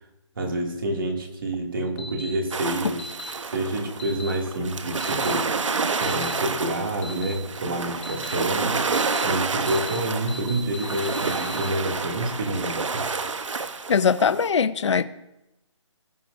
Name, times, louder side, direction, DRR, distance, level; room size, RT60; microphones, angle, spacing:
voice 1, 0.4-3.0 3.4-5.5 5.9-8.7 9.2-13.1, right 1 dB, 45° right, 2 dB, 2.4 m, -28 dB
sound 1, 2.0-2.3 3.0-3.3 4.0-4.3 5.0-5.3 6.0-6.3 7.0-7.3 8.0-8.3 8.9-9.2 9.7-10.0 10.3-11.7, left 2 dB, 20° left, 1.4 m, -38 dB
sound 2, 2.5-14.5, right 4 dB, 80° right, 1.1 m, -29 dB
voice 2, 13.9-15.0, left 6 dB, 70° left, 11 dB, 0.5 m, -21 dB
19.5 x 9.1 x 2.6 m, 0.91 s
hypercardioid pair, 180°, 16 cm